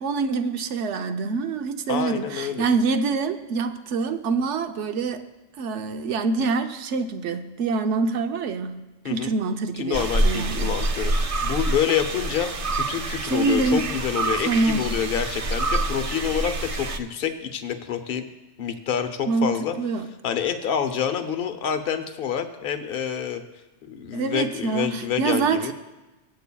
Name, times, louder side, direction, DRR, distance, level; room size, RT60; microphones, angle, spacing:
voice 1, 0.0-5.2 5.6-10.8 13.2-13.9 14.5-14.8 19.3-19.5 19.8-20.1 24.1-25.7, right 4 dB, 70° right, 8 dB, 1.0 m, -25 dB
voice 2, 1.9-2.7 9.0-9.3 9.8-18.2 18.6-19.7 20.2-23.4 23.9-25.7, left 8 dB, 50° left, 8 dB, 0.9 m, -27 dB
sound 1, 9.9-17.0, right 2 dB, 50° right, 0.4 m, -26 dB
18.0 x 8.4 x 2.3 m, 1.1 s
omnidirectional pair, 1.3 m